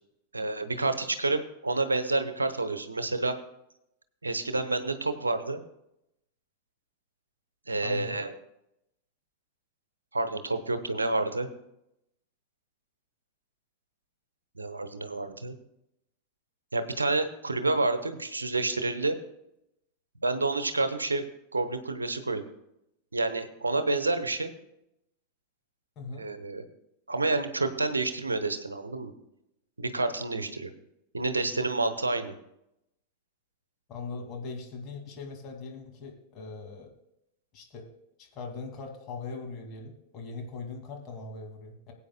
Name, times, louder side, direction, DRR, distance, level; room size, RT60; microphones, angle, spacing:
voice 1, 0.3-3.4 4.2-5.6 7.7-8.3 10.1-11.5 14.6-15.6 16.7-19.2 20.2-21.2 21.5-22.5 23.1-24.5 26.2-26.6 27.1-29.1 29.8-30.7 31.1-32.3, right 2 dB, 80° right, 10 dB, 0.9 m, -29 dB
voice 2, 7.8-8.2 26.0-26.3 33.9-36.9 37.5-37.9 38.2-41.9, left 4 dB, 35° left, 2 dB, 2.2 m, -40 dB
20.5 x 8.5 x 2.2 m, 0.82 s
figure-of-eight pair, 90°, 0 cm